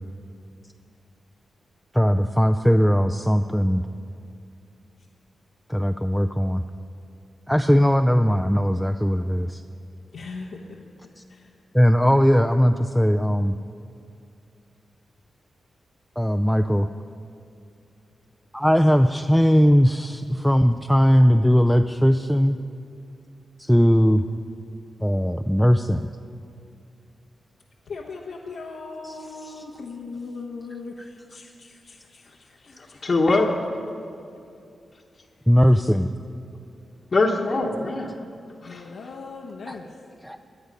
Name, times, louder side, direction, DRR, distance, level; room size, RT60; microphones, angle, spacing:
voice 1, 1.9-3.8 5.7-6.6 7.5-9.6 11.7-13.6 16.2-16.9 18.5-22.6 23.6-24.3 25.0-26.1 35.5-36.1 39.7-39.8 40.2-40.4, equal, ahead, 7 dB, 0.4 m, -19 dB
voice 2, 10.1-11.6 27.8-33.1 35.2-35.5 38.6-40.0, left 4 dB, 90° left, -2 dB, 1.1 m, -39 dB
voice 3, 32.8-33.6 37.1-38.2 38.6-38.8, left 2 dB, 50° left, -3 dB, 1.1 m, -22 dB
18.0 x 10.0 x 5.3 m, 2.5 s
cardioid pair, 95°, 0 cm